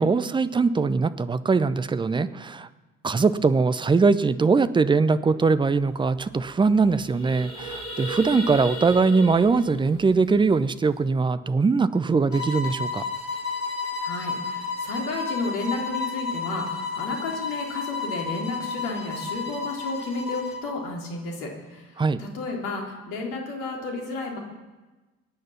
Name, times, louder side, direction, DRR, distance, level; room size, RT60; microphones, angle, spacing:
voice 1, 0.0-2.7 3.0-13.0 22.0-22.2, right 4 dB, 15° right, 13 dB, 0.7 m, -21 dB
sound 1, 5.8-5.9 6.2-6.4 6.8-11.1, right 2 dB, 40° left, 5.7 m, -36 dB
sound 2, 12.3-20.7, left 4 dB, 80° left, 2.2 m, -32 dB
voice 2, 14.0-24.4, left 3 dB, 60° left, 1 dB, 3.6 m, -32 dB
21.5 x 9.3 x 5.8 m, 1.2 s
figure-of-eight pair, 60°, 38 cm